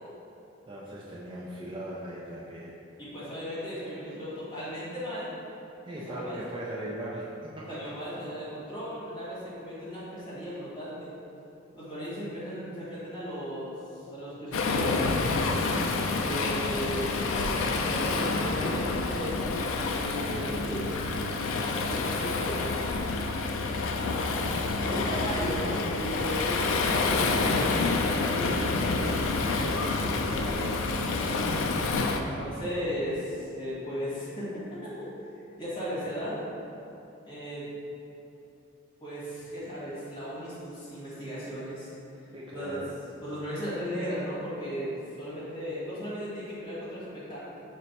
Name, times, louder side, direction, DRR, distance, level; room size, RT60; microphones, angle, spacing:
voice 1, 0.7-2.7 5.9-7.7 29.3-30.8 42.3-42.9, right 1 dB, 25° right, -6 dB, 0.4 m, -39 dB
voice 2, 3.0-5.3 6.1-6.4 7.7-11.1 11.7-15.1 16.2-17.4 17.7-19.4 19.9-20.9 21.5-22.8 24.8-28.7 31.2-31.5 32.2-35.1 35.6-36.4 37.2-37.7 39.0-42.8 43.2-47.4, equal, 25° left, -10 dB, 1.4 m, -36 dB
Waves surf, 14.5-32.2, left 3 dB, 85° left, 0.3 m, -28 dB
5.0 x 2.2 x 4.0 m, 2.8 s
head